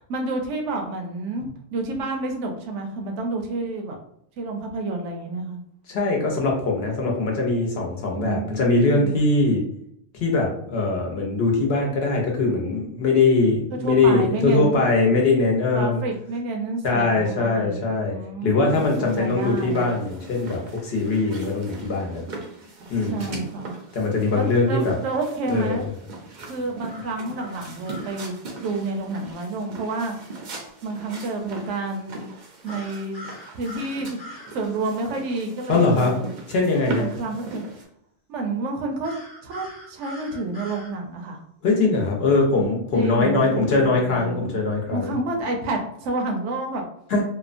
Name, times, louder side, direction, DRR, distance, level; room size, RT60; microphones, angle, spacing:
voice 1, 0.0-4.0 4.4-5.6 8.1-9.2 13.7-14.8 15.7-19.8 22.6-22.7 23.1-23.7 24.4-25.9 26.5-28.3 28.6-30.2 30.8-32.2 32.6-33.2 33.5-36.3 37.0-37.6 38.3-39.1 39.4-41.4 42.9-44.6 44.9-46.8, right 2 dB, 85° right, 3 dB, 0.9 m, -29 dB
voice 2, 5.9-9.6 10.1-16.0 16.8-18.2 18.4-22.2 22.9-23.4 23.9-24.9 25.5-25.9 35.7-36.1 36.5-37.1 41.6-45.2 47.1-47.2, left 3 dB, 65° left, -1 dB, 0.9 m, -21 dB
sound 1, 18.7-37.8, right 3 dB, 55° right, 0.5 m, -39 dB
sound 2, 26.9-28.2 32.6-34.5 39.0-40.9, equal, 25° left, 0.6 m, -42 dB
2.8 x 2.1 x 2.4 m, 0.72 s
omnidirectional pair, 1.2 m